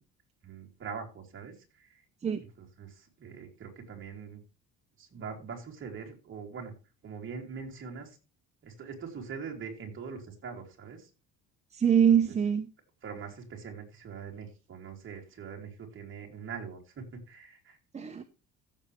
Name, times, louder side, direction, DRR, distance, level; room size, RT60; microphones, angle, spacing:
voice 1, 0.4-2.0 2.6-4.4 5.0-6.7 7.0-8.2 8.6-11.1 12.1-12.2 13.0-17.8, right 6 dB, 35° right, 1 dB, 3.3 m, -43 dB
voice 2, 11.7-12.7 17.9-18.2, right 8 dB, 20° right, 6 dB, 0.7 m, -24 dB
15.0 x 7.2 x 3.3 m, 0.30 s
cardioid pair, 140°, 33 cm